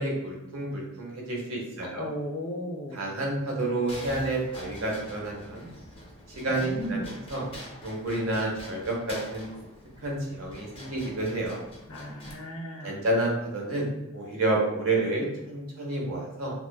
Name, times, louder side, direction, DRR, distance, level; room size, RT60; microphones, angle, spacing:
voice 1, 0.0-2.1 2.9-5.7 6.4-7.4 7.8-9.5 10.0-11.6 12.8-16.5, right 2 dB, 70° right, -1 dB, 0.8 m, -29 dB
voice 2, 2.0-3.1 6.5-7.1 11.9-13.1, equal, 70° left, 1 dB, 0.6 m, -35 dB
sound 1, 3.9-12.3, left 1 dB, 25° left, 0.5 m, -45 dB
2.9 x 2.0 x 2.2 m, 0.93 s
head